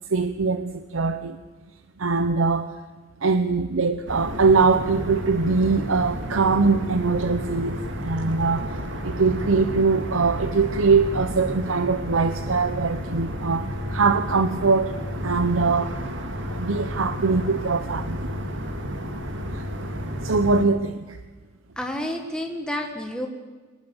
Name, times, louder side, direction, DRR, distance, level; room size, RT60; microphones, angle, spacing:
voice 1, 0.1-1.4 2.0-2.7 3.2-8.7 9.0-14.9 15.2-15.9 16.6-18.3 19.6-19.7 20.2-21.2, right 4 dB, 80° right, 10 dB, 0.8 m, -22 dB
sound 1, 4.1-20.7, equal, 65° right, 2.2 m, -31 dB
voice 2, 21.8-23.3, left 1 dB, 5° left, 2 dB, 1.8 m, -30 dB
23.0 x 19.0 x 7.1 m, 1.3 s
head